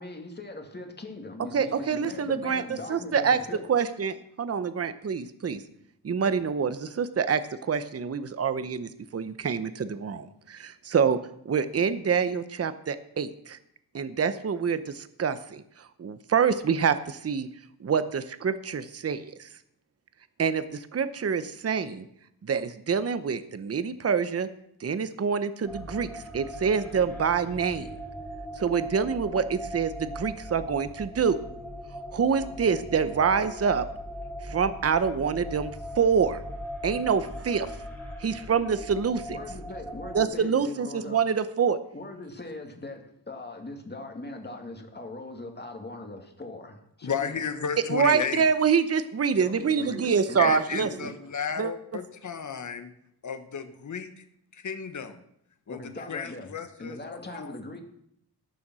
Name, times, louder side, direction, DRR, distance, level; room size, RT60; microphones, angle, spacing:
voice 1, 0.0-3.6 39.3-41.2 41.9-47.4 49.3-51.1 55.7-56.5 56.8-57.8, left 2 dB, 25° left, 3 dB, 2.2 m, -40 dB
voice 2, 1.5-3.4 3.7-5.6 6.0-11.2 11.4-13.6 13.9-17.5 17.8-19.5 20.4-22.0 22.4-24.5 24.8-27.9 28.6-31.4 32.1-33.9 34.4-36.4 36.8-37.8 38.2-39.4 40.1-41.8 47.9-50.9 51.6-51.7, right 6 dB, 40° right, 12 dB, 0.8 m, -26 dB
sound 1, 25.6-40.3, equal, 5° left, 2.1 m, -39 dB
voice 3, 47.0-48.5 50.4-52.9 53.2-54.3 54.5-55.2 55.7-57.6, left 6 dB, 50° left, 9 dB, 1.3 m, -33 dB
18.0 x 7.0 x 6.2 m, 0.73 s
wide cardioid pair, 125°, 38 cm